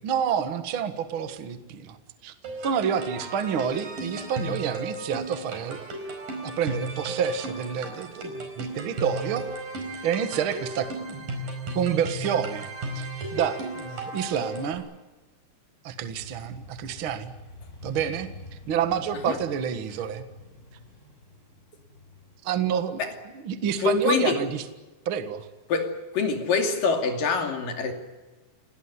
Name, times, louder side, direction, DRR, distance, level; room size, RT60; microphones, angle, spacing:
voice 1, 0.0-2.3 2.6-5.8 6.4-9.5 10.0-11.3 11.7-12.7 12.9-14.8 15.8-17.3 17.8-20.2 22.4-23.0 23.4-24.6 25.0-25.5, right 8 dB, 75° right, 1.1 m, -28 dB
sound 1, 2.4-14.7, right 1 dB, 50° right, 6.1 m, -35 dB
Motorcycle, 16.0-23.7, left 3 dB, 15° left, 5.6 m, -48 dB
voice 2, 23.8-24.4 25.7-27.9, left 5 dB, 55° left, 4.0 m, -25 dB
28.5 x 18.0 x 9.7 m
omnidirectional pair, 5.1 m